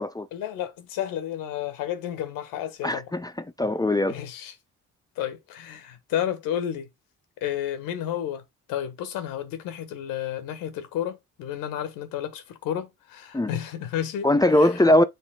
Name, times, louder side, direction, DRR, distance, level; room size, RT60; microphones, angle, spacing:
voice 1, 0.3-3.1 4.1-4.5 5.2-6.9 7.4-8.4 8.7-14.3 14.6-14.7, left 10 dB, 85° left, 1.6 m, -31 dB
voice 2, 2.8-3.3 3.6-4.2 13.3-13.5 14.2-15.0, left 1 dB, 10° left, 0.7 m, -20 dB
7.5 x 3.6 x 3.7 m
supercardioid pair, 65°, 33 cm